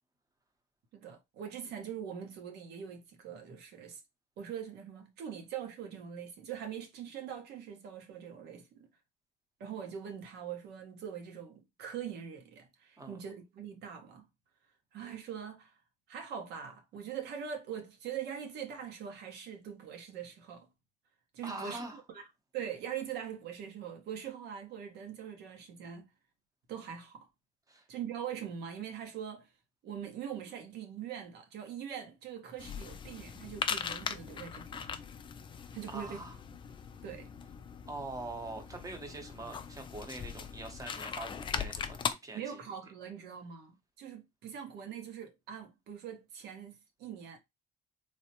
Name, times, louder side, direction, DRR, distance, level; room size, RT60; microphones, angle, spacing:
voice 1, 0.9-4.0 4.4-8.9 9.6-14.3 14.9-15.7 16.1-20.7 21.3-22.2 22.5-26.1 26.7-27.3 27.9-29.5 29.8-34.8 35.7-36.2 37.0-37.3 42.3-47.4, right 8 dB, 75° right, 0.8 m, -42 dB
voice 2, 21.4-22.0 27.7-27.9 35.9-36.4 37.9-42.6, right 2 dB, 20° right, 0.8 m, -43 dB
crunch - treat dropped and dog munches, 32.6-42.1, left 6 dB, 30° left, 0.3 m, -40 dB
3.3 x 2.0 x 2.8 m
cardioid pair, 110°, 17 cm